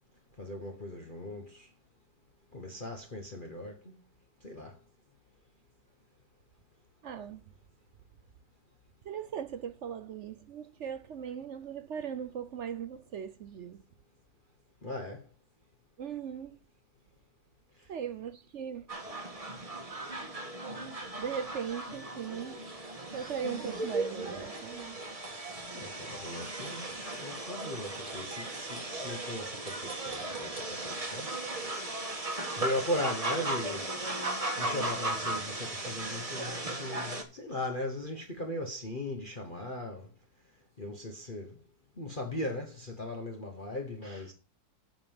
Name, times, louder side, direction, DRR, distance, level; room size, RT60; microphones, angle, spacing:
voice 1, 0.4-1.7 2.5-3.9 4.4-4.7 14.8-15.2 25.7-26.9 27.1-31.3 31.8-32.1 32.6-33.9 34.6-40.1 40.8-41.5 42.0-44.3, left 1 dB, 30° left, 1.2 m, -38 dB
voice 2, 7.0-7.4 9.0-13.8 16.0-16.6 17.9-18.9 21.2-22.6 23.1-25.0, right 8 dB, 65° right, 0.7 m, -39 dB
sound 1, 18.9-37.2, right 2 dB, 20° right, 1.4 m, -37 dB
7.9 x 5.5 x 7.1 m
omnidirectional pair, 1.9 m